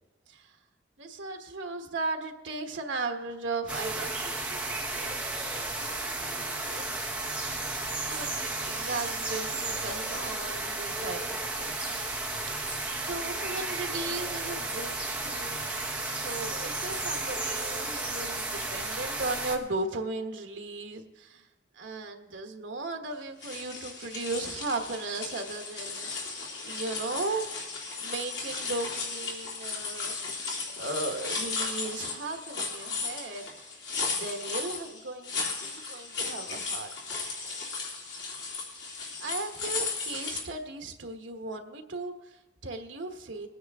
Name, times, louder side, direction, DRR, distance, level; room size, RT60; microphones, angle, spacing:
voice 1, 1.0-4.6 4.9-5.2 5.5-6.8 7.4-11.9 12.5-15.6 16.0-21.5 21.7-26.1 26.6-27.5 28.0-30.2 30.8-33.5 34.0-35.3 35.6-37.2 39.2-43.5, right 3 dB, 80° right, 5 dB, 1.3 m, -37 dB
sound 1, 3.7-19.6, right 2 dB, 5° right, 1.0 m, -33 dB
sound 2, 23.4-40.4, left 4 dB, 65° left, 2.6 m, -35 dB
21.0 x 9.4 x 3.6 m, 1.1 s
head